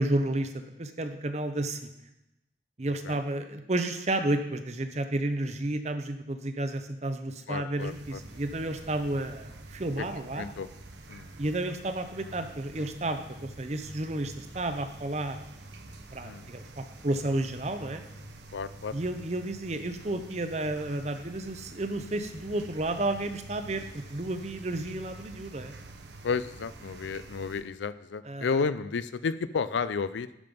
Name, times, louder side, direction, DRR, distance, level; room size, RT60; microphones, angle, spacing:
voice 1, 0.0-1.8 2.8-10.5 11.4-15.4 16.1-18.0 18.9-25.7 28.3-28.6, right 1 dB, 35° right, 8 dB, 0.7 m, -31 dB
voice 2, 7.5-8.2 10.0-10.1 10.4-10.7 11.1-11.3 16.2-16.5 18.5-19.0 26.2-30.3, left 5 dB, 90° left, 15 dB, 0.4 m, -32 dB
sound 1, 7.8-27.6, right 2 dB, 75° right, 0.9 m, -47 dB
11.5 x 5.3 x 5.3 m, 0.88 s
head